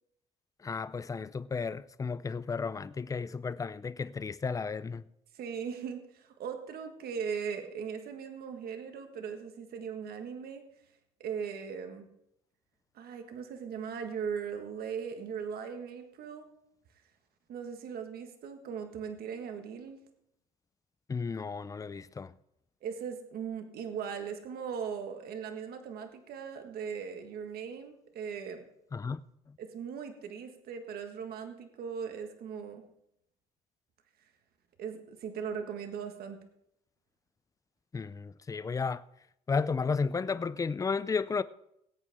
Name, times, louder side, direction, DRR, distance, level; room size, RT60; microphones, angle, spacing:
voice 1, 0.6-5.0 21.1-22.3 28.9-29.2 29.5-29.6 37.9-39.0 39.5-41.4, left 5 dB, 20° left, 0.5 m, -33 dB
voice 2, 5.3-10.7 11.2-12.0 12.9-16.5 17.5-20.0 22.8-28.6 29.6-32.8 34.8-36.4, right 7 dB, 65° right, 1.6 m, -39 dB
19.5 x 8.5 x 3.6 m
cardioid pair, 110°, 17 cm